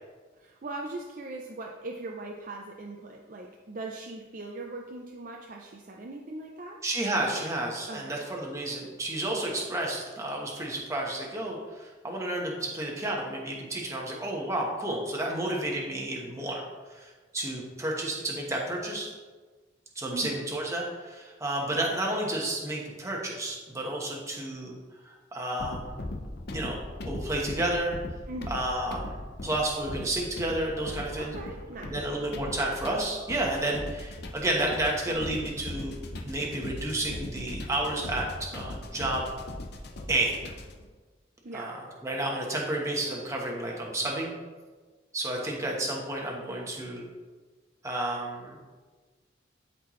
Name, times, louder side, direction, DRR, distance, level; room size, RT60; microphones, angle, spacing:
voice 1, 0.4-6.8 7.9-8.2 20.1-20.4 28.3-28.6 31.2-31.9 41.4-41.7, right 2 dB, 45° right, 0 dB, 0.5 m, -40 dB
voice 2, 6.8-16.6 16.9-19.1 19.9-24.8 25.0-26.1 26.5-26.8 27.0-28.0 28.5-31.3 31.8-36.0 36.2-39.3 40.1-40.4 41.5-41.8 42.0-44.3 45.1-47.1 47.8-48.6, right 1 dB, 15° right, -2 dB, 1.1 m, -31 dB
sound 1, 25.6-40.8, left 1 dB, 55° left, 0.8 m, -39 dB
12.5 x 4.4 x 3.1 m, 1.4 s
head